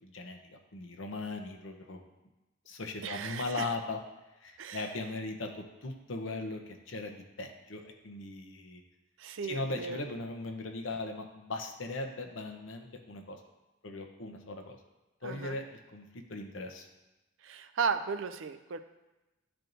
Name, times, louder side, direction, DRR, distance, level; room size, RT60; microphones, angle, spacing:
voice 1, 0.0-2.1 2.7-4.0 4.4-8.8 9.4-13.4 13.8-14.8 15.2-16.9, left 2 dB, 70° left, 4 dB, 0.8 m, -39 dB
voice 2, 3.0-3.6 4.6-4.8 9.2-10.0 15.2-15.6 17.4-18.8, right 6 dB, 70° right, 9 dB, 0.5 m, -35 dB
12.5 x 4.5 x 2.6 m, 1.0 s
head